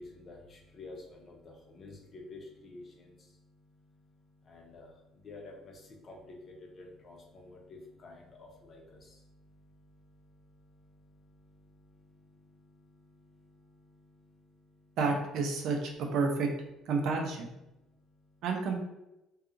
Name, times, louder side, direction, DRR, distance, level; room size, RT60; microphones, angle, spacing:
voice 1, 0.0-15.0 17.7-18.4, left 2 dB, 45° left, 0 dB, 0.7 m, -52 dB
voice 2, 15.0-16.5 16.9-17.5 18.4-18.8, right 4 dB, 70° right, 2 dB, 0.5 m, -30 dB
2.7 x 2.3 x 2.5 m, 0.93 s
supercardioid pair, 70°, 0 cm